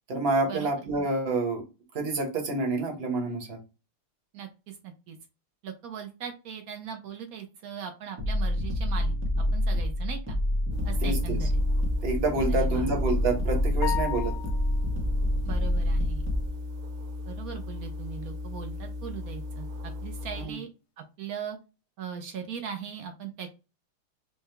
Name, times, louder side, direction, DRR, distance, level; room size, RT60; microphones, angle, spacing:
voice 1, 0.1-1.6 1.9-3.6 11.0-11.4 12.0-14.3 20.4-20.6, right 3 dB, 40° right, 2 dB, 0.9 m, -28 dB
voice 2, 4.3-5.2 5.6-9.2 9.5-10.4 10.8-11.5 12.5-12.9 15.4-16.2 17.3-20.7 21.2-21.6 22.0-23.5, right 7 dB, 90° right, 4 dB, 0.7 m, -39 dB
sound 1, 8.2-16.5, left 1 dB, 10° right, 0.6 m, -27 dB
sound 2, 10.7-20.5, left 3 dB, 70° right, 1.7 m, -37 dB
sound 3, 13.8-14.9, left 12 dB, 80° left, 1.7 m, -34 dB
4.8 x 2.1 x 3.4 m, 0.29 s
omnidirectional pair, 2.4 m